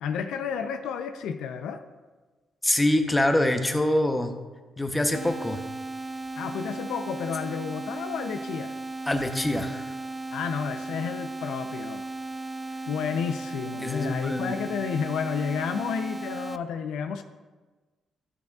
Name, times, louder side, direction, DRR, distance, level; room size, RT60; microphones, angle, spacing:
voice 1, 0.0-1.8 6.4-8.7 10.3-12.1 12.9-17.2, left 7 dB, 80° left, 8 dB, 0.5 m, -31 dB
voice 2, 2.6-4.3 4.8-5.6 9.1-9.9 13.8-14.5, left 1 dB, 10° left, 6 dB, 0.7 m, -25 dB
sound 1, 5.1-16.6, right 2 dB, 20° right, 0.3 m, -36 dB
12.0 x 6.7 x 2.3 m, 1.3 s
cardioid pair, 90°, 0 cm